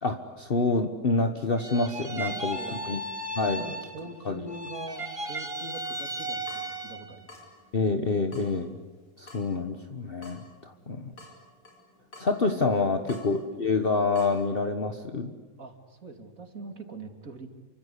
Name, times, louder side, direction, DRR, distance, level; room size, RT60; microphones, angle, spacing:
voice 1, 0.0-2.6 2.9-3.0 3.4-3.6 4.2-4.4 7.7-8.8 9.2-11.1 12.2-15.3, left 3 dB, 40° left, 6 dB, 1.5 m, -27 dB
sound 1, 1.6-4.2 4.5-7.2, right 1 dB, 20° right, 2.2 m, -35 dB
voice 2, 2.3-3.0 3.6-7.4 10.6-11.1 13.0-13.2 15.6-17.5, right 2 dB, 60° right, 5 dB, 3.3 m, -43 dB
Water tap faucet / Drip, 5.8-14.4, left 2 dB, 85° left, 5.6 m, -53 dB
28.5 x 25.0 x 8.4 m, 1.2 s
omnidirectional pair, 1.6 m